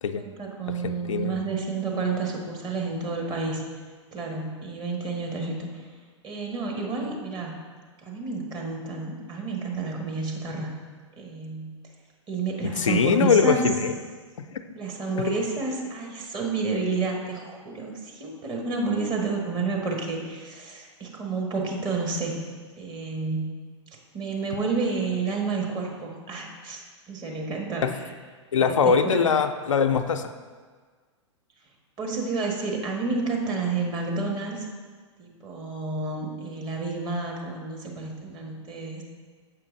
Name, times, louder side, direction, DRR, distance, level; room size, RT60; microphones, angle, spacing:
voice 1, 0.1-3.6 4.1-5.8 6.2-7.6 8.0-10.7 11.2-11.7 12.3-13.6 14.7-22.4 22.8-23.5 24.1-26.8 27.1-28.1 28.5-29.3 32.0-34.7 35.2-39.0, right 3 dB, 30° right, 0 dB, 1.3 m, -30 dB
voice 2, 0.8-1.4 12.6-13.9 14.4-14.6 27.8-27.9 28.5-30.3, left 6 dB, 85° left, 7 dB, 0.4 m, -22 dB
7.1 x 4.7 x 3.8 m, 1.5 s
hypercardioid pair, 105°, 16 cm